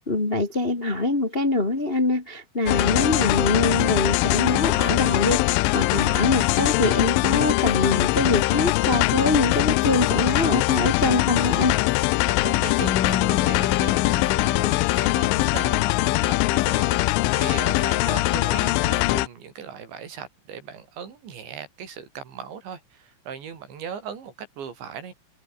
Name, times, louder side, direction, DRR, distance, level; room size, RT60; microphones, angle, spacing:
voice 1, 0.0-11.8, left 2 dB, 30° left, 1.1 m, -24 dB
sound 1, 2.7-19.3, left 20 dB, 90° left, 3.2 m, -22 dB
voice 2, 12.3-25.1, right 7 dB, 65° right, 6.3 m, -38 dB
Bass guitar, 12.8-19.1, left 7 dB, 50° left, 4.1 m, -35 dB
omnidirectional pair, 5.7 m